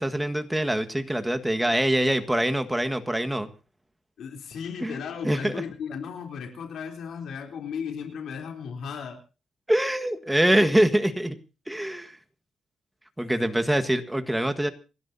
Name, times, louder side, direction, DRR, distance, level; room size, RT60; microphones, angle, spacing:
voice 1, 0.0-3.5 4.8-5.0 5.2-5.6 9.7-11.4 11.7-12.2 13.2-14.7, right 1 dB, 5° right, 7 dB, 1.6 m, -24 dB
voice 2, 4.2-9.2, left 6 dB, 75° left, 4 dB, 3.5 m, -35 dB
29.0 x 12.0 x 2.7 m, 0.32 s
cardioid pair, 110°, 0 cm